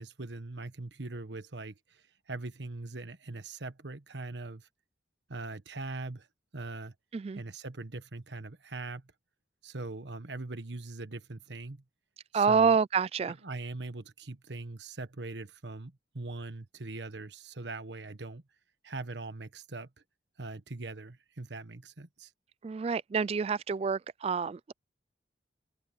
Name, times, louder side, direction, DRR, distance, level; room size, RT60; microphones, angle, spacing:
voice 1, 0.0-4.7 5.3-6.3 6.5-6.9 7.4-9.0 9.6-11.8 12.3-12.8 13.4-18.4 18.8-19.9 20.4-22.3, right 2 dB, 80° right, 1.3 m, -41 dB
voice 2, 12.3-13.4 22.6-24.7, right 5 dB, 35° right, 0.3 m, -27 dB
open air
head